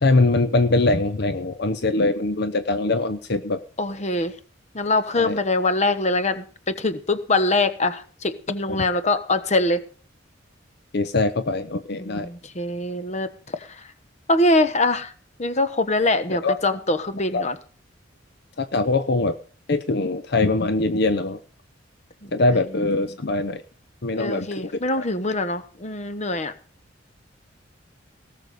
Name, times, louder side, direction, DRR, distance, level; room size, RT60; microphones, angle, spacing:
voice 1, 0.0-3.6 5.2-5.4 8.7-8.9 9.1-9.2 10.9-12.3 16.3-16.6 17.3-17.4 18.6-19.4 19.7-21.4 22.3-23.6 24.0-24.8, left 2 dB, 55° left, 11 dB, 0.8 m, -22 dB
voice 2, 3.8-4.4 4.7-9.8 12.0-13.9 14.3-15.1 15.4-17.6 22.2-22.6 24.2-26.5, left 2 dB, 35° left, 13 dB, 1.2 m, -23 dB
18.5 x 6.8 x 6.6 m, 0.41 s
head